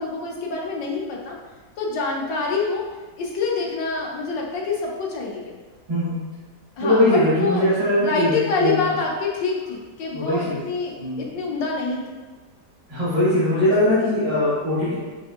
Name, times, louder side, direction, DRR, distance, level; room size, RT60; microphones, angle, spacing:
voice 1, 0.0-1.4 1.8-2.9 3.2-5.5 6.8-12.1, left 4 dB, 90° left, -1 dB, 1.4 m, -26 dB
voice 2, 6.8-8.3 8.6-8.7 10.1-10.6 11.0-11.3 12.9-14.9, left 1 dB, 85° right, -13 dB, 2.3 m, -20 dB
6.3 x 2.6 x 2.4 m, 1.3 s
omnidirectional pair, 1.9 m